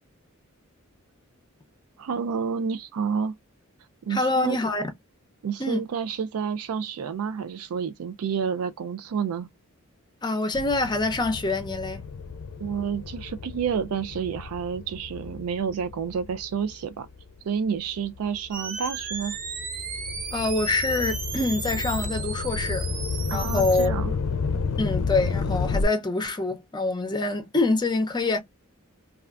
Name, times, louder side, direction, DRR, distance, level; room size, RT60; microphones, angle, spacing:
voice 1, 2.0-3.3 4.0-4.6 5.4-9.5 12.6-17.1 17.4-19.4 23.3-24.1, right 6 dB, 85° right, 0.4 m, -29 dB
voice 2, 4.1-4.8 5.6-5.8 10.2-12.0 20.3-22.9 23.3-23.9 24.8-28.4, left 3 dB, 20° left, 0.6 m, -25 dB
sound 1, 10.5-17.3 17.9-25.8, left 4 dB, 70° left, 0.5 m, -31 dB
sound 2, 18.5-23.9, right 5 dB, 40° right, 0.8 m, -35 dB
3.3 x 2.3 x 2.4 m
head